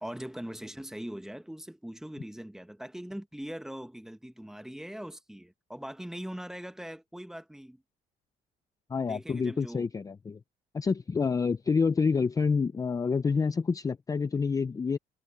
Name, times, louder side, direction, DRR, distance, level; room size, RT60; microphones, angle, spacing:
voice 1, 0.0-7.8 9.0-9.9, equal, 5° right, 1.3 m, -41 dB
voice 2, 8.9-10.4 10.7-15.0, left 5 dB, 20° left, 0.5 m, -28 dB
cardioid pair, 110°, 17 cm